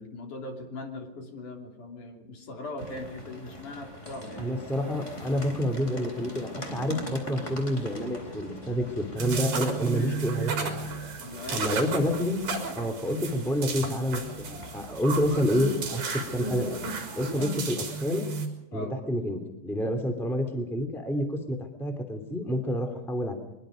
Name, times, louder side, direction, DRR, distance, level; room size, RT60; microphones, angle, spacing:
voice 1, 0.0-4.7 9.9-10.1 11.2-11.9 17.3-17.6 18.7-18.9, left 2 dB, 50° left, 3 dB, 4.3 m, -40 dB
sound 1, 2.8-17.5, equal, 20° left, 3.5 m, -43 dB
voice 2, 4.4-10.7 11.5-12.4 12.7-16.8 17.1-18.2 18.7-23.4, equal, ahead, 6 dB, 1.9 m, -28 dB
sound 2, 9.2-18.5, right 5 dB, 50° right, 5.0 m, -34 dB
24.0 x 22.5 x 5.3 m, 0.97 s
omnidirectional pair, 4.9 m